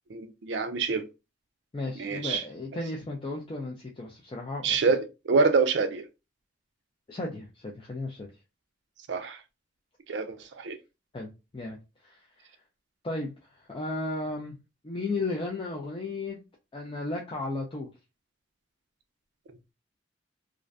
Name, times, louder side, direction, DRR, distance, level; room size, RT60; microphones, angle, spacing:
voice 1, 0.1-1.1 2.0-2.4 4.6-6.1 9.1-9.4 10.1-10.8, right 4 dB, 60° right, 0.4 m, -26 dB
voice 2, 1.7-4.8 7.1-8.3 11.1-12.3 13.0-14.6 14.8-16.4 16.7-17.9, left 2 dB, 25° left, 0.3 m, -34 dB
2.4 x 2.1 x 2.4 m
head